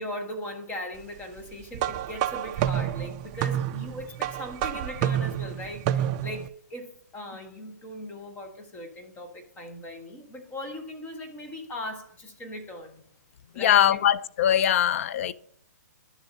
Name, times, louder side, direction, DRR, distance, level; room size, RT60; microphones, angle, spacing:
voice 1, 0.0-13.0 13.5-14.0, left 1 dB, 15° left, 1.3 m, -39 dB
sound 1, 1.7-6.5, right 10 dB, 25° right, 0.4 m, -29 dB
voice 2, 13.6-15.3, left 10 dB, 45° left, 0.5 m, -22 dB
11.5 x 7.0 x 2.7 m
hypercardioid pair, 145°, 10 cm